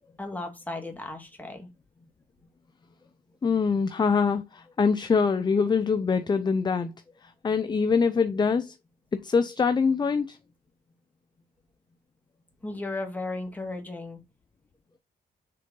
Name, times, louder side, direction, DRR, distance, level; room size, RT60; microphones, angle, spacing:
voice 1, 0.2-1.7 12.6-14.2, left 2 dB, 10° left, 2.1 m, -35 dB
voice 2, 3.4-7.0 7.2-8.8 9.1-10.4, left 5 dB, 25° left, 0.6 m, -24 dB
6.7 x 3.8 x 3.7 m
cardioid pair, 95°, 17 cm